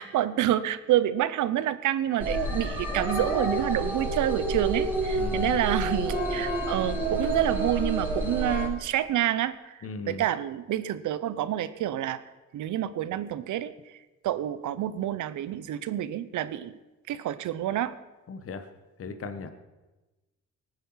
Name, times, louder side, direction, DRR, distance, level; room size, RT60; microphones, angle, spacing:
voice 1, 0.0-12.2 12.5-16.8 17.1-17.9, right 12 dB, 75° right, 15 dB, 0.9 m, -28 dB
sound 1, 2.2-8.7, right 2 dB, 5° right, 3.8 m, -29 dB
voice 2, 5.2-5.5 9.8-10.2 18.3-18.7 19.0-19.5, left 4 dB, 50° left, 9 dB, 1.3 m, -37 dB
19.0 x 9.1 x 5.7 m, 1.1 s
cardioid pair, 90°, 30 cm